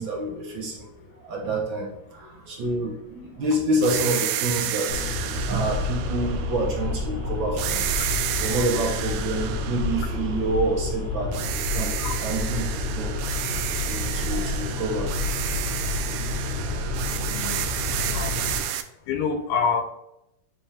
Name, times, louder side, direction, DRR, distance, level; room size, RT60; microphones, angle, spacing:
voice 1, 0.0-5.1 5.5-7.9 8.3-11.4 11.7-13.2 13.7-15.1 15.5-16.4 17.9-18.1, right 1 dB, 60° right, -1 dB, 1.3 m, -28 dB
sound 1, 3.8-7.1 7.6-10.9 11.3-18.8, right 11 dB, 80° right, 1.8 m, -31 dB
sound 2, 4.9-18.6, left 3 dB, 60° left, 1.3 m, -29 dB
voice 2, 19.1-19.8, left 5 dB, 75° left, 6 dB, 2.1 m, -26 dB
8.7 x 3.5 x 3.5 m, 0.81 s
omnidirectional pair, 3.7 m